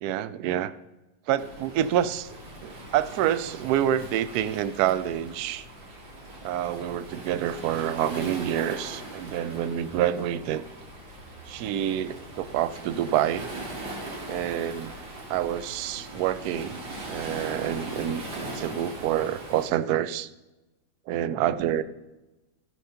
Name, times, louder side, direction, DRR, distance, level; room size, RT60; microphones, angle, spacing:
voice 1, 0.0-0.7 1.3-2.3 2.6-5.6 6.4-10.6 11.5-13.5 14.3-14.9 15.3-16.8 17.1-20.3 21.1-21.8, right 11 dB, 70° right, 14 dB, 0.9 m, -27 dB
Waves surf, 1.4-19.7, right 1 dB, 85° right, 2.8 m, -40 dB
13.5 x 6.1 x 5.7 m, 1.0 s
omnidirectional pair, 2.0 m